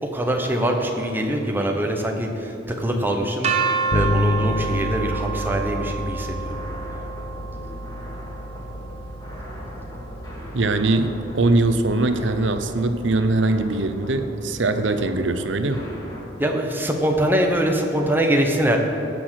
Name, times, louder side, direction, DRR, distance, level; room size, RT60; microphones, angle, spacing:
voice 1, 0.0-3.5 3.9-6.5 16.4-18.8, right 1 dB, 10° right, 2 dB, 1.0 m, -23 dB
sound 1, 3.4-9.4, right 5 dB, 35° right, 1.0 m, -29 dB
Bass guitar, 3.9-13.6, left 1 dB, 65° left, 0.7 m, -31 dB
sound 2, 5.3-16.2, equal, 20° left, 2.4 m, -39 dB
voice 2, 10.5-15.9, right 2 dB, 80° right, 9 dB, 0.8 m, -21 dB
16.5 x 6.2 x 6.3 m, 2.9 s
head